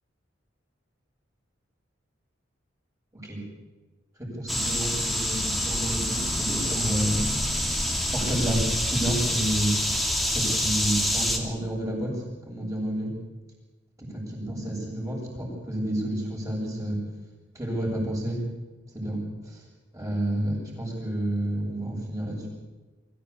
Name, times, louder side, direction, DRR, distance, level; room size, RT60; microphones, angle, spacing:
voice 1, 4.2-7.2 7.5-7.7 8.1-9.7 10.3-13.1 14.0-17.0 17.5-18.4 18.9-19.6 19.9-22.5, right 1 dB, 15° right, -2 dB, 7.8 m, -30 dB
sound 1, 4.5-11.4, equal, ahead, 2.6 m, -27 dB
24.0 x 15.5 x 8.6 m, 1.2 s
head